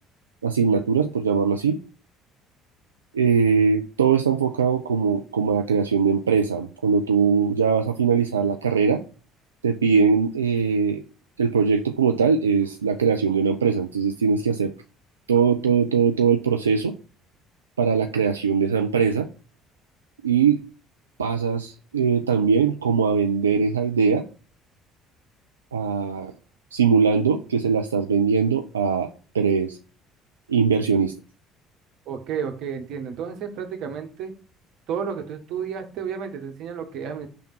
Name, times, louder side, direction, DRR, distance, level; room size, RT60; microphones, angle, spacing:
voice 1, 0.4-1.8 3.1-9.0 9.6-11.0 11.4-14.7 15.3-16.9 17.8-19.3 20.2-20.6 21.2-24.2 25.7-26.3 26.7-29.1 29.3-29.8 30.5-31.1, right 6 dB, 90° right, 5 dB, 0.4 m, -21 dB
voice 2, 32.1-34.3 34.9-37.3, right 7 dB, 60° right, 5 dB, 1.3 m, -31 dB
5.9 x 3.5 x 5.9 m, 0.37 s
hypercardioid pair, 55°, 0 cm